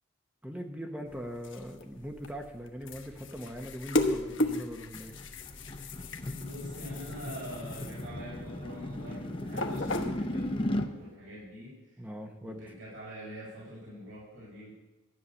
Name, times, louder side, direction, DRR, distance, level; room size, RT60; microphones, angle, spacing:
voice 1, 0.4-5.2 12.0-12.7, equal, 5° right, 3 dB, 1.0 m, -41 dB
sound 1, 1.1-10.6, left 1 dB, 70° left, 1.1 m, -36 dB
sound 2, 4.9-10.9, left 1 dB, 25° left, 0.7 m, -36 dB
voice 2, 6.3-12.0 12.4-14.8, equal, 75° right, -7 dB, 5.1 m, -45 dB
12.5 x 6.7 x 8.7 m, 1.0 s
head